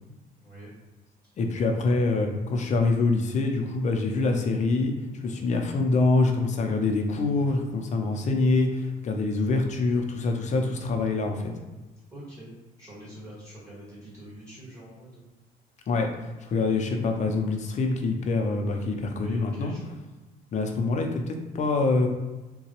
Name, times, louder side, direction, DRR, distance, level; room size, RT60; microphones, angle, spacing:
voice 1, 0.3-0.7 12.1-12.5 12.8-15.2 19.0-19.9, equal, 20° right, -8 dB, 1.4 m, -45 dB
voice 2, 1.4-4.9 5.2-11.5 15.9-16.1 16.4-19.7 20.5-22.1, left 3 dB, 45° left, 3 dB, 0.6 m, -25 dB
3.9 x 2.2 x 2.9 m, 1.1 s
cardioid pair, 110°, 17 cm